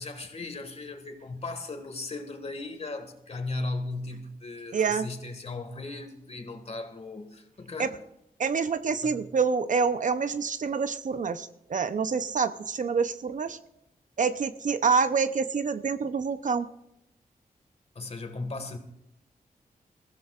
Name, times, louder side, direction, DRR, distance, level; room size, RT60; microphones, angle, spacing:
voice 1, 0.0-8.0 9.0-9.2 17.9-18.8, left 3 dB, 45° left, 1.8 m, -37 dB
voice 2, 4.7-5.1 7.8-7.9 8.4-13.6 14.2-16.7, right 5 dB, 55° right, 0.7 m, -27 dB
21.5 x 15.5 x 2.4 m
wide cardioid pair, 85°, 15 cm